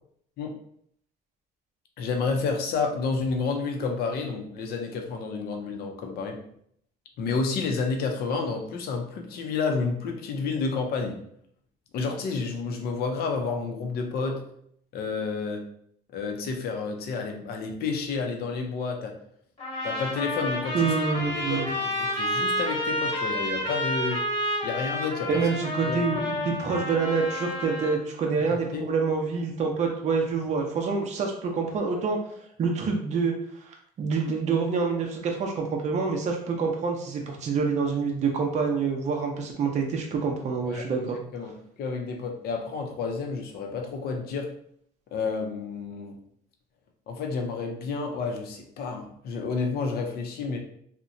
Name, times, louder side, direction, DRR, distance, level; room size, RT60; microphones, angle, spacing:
voice 1, 2.0-6.4 7.2-11.2 11.9-14.4 14.9-15.6 16.1-19.1 19.8-21.0 21.3-24.2 24.6-25.4 25.9-26.2 28.5-28.8 40.7-44.5 45.1-46.2 47.1-50.6, left 4 dB, 65° left, 3 dB, 0.6 m, -30 dB
sound 1, 19.6-28.0, left 1 dB, 30° left, 1.1 m, -30 dB
voice 2, 20.7-21.7 25.3-32.2 32.6-33.3 33.7-41.2, right 5 dB, 45° right, 1 dB, 0.5 m, -27 dB
2.8 x 2.1 x 2.5 m, 0.67 s
cardioid pair, 110°, 17 cm